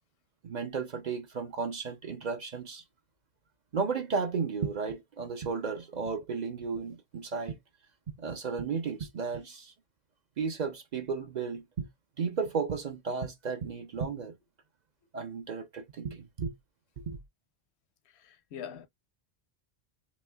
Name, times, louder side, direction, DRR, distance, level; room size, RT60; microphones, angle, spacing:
voice 1, 0.4-2.8 3.7-7.6 8.2-9.7 10.4-11.9 12.2-14.3 15.1-16.5 17.0-17.2, right 5 dB, 50° right, 0.6 m, -34 dB
voice 2, 18.2-18.9, left 8 dB, 80° left, 0.9 m, -42 dB
4.2 x 2.7 x 2.2 m
omnidirectional pair, 1.1 m